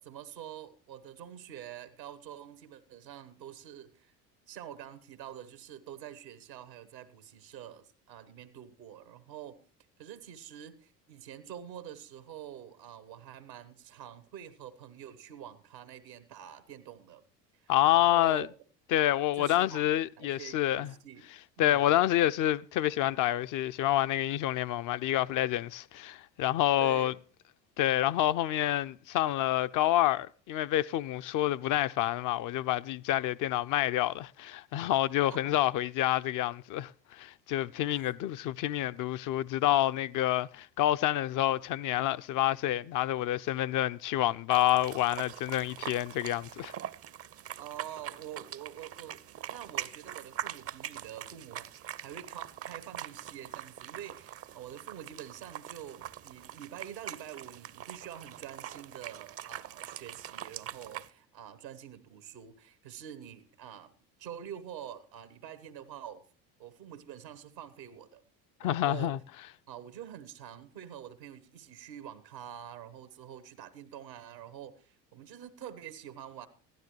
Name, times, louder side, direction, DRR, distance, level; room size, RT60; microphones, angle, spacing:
voice 1, 0.0-4.2 4.5-9.6 10.0-17.2 17.5-18.5 19.3-19.9 20.2-21.2 21.6-21.9 26.8-27.1 35.3-35.6 37.9-38.1 47.6-63.9 64.2-66.2 66.6-68.2 68.6-69.2 69.7-76.5, right 10 dB, 85° right, 1.3 m, -46 dB
voice 2, 17.7-18.5 18.9-20.9 21.6-27.1 27.8-46.7 68.6-69.2, left 13 dB, 40° left, 0.4 m, -28 dB
sound 1, 44.5-61.1, right 11 dB, 30° right, 0.5 m, -43 dB
16.0 x 12.0 x 3.1 m
hypercardioid pair, 65°, 50 cm